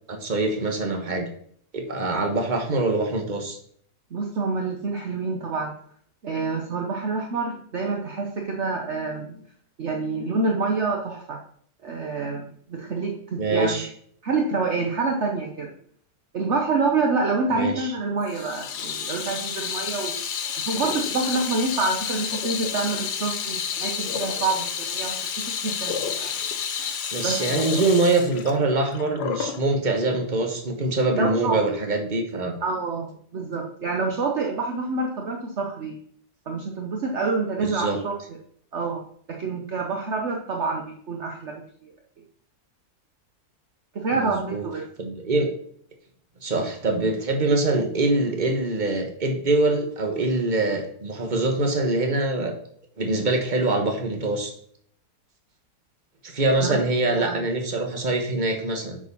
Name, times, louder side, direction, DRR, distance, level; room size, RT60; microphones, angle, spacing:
voice 1, 0.1-1.3 1.7-3.6 13.4-13.9 17.5-17.9 27.1-32.5 37.6-38.0 44.1-44.6 45.0-45.5 46.4-52.5 53.0-54.5 56.2-59.0, right 2 dB, 30° right, 4 dB, 1.5 m, -24 dB
voice 2, 4.1-5.7 6.2-9.4 9.8-11.4 11.8-13.9 14.2-15.7 16.3-20.2 20.7-26.3 27.2-27.6 31.1-31.6 32.6-36.0 36.5-38.1 38.7-39.0 39.3-41.5 41.8-41.9 43.9-44.8 56.6-56.8 57.1-57.4, right 3 dB, 50° right, 1 dB, 1.2 m, -27 dB
Water tap faucet / Sink (filling or washing), 18.3-29.6, left 7 dB, 85° left, 1.5 m, -30 dB
9.0 x 5.0 x 5.4 m, 0.63 s
omnidirectional pair, 1.7 m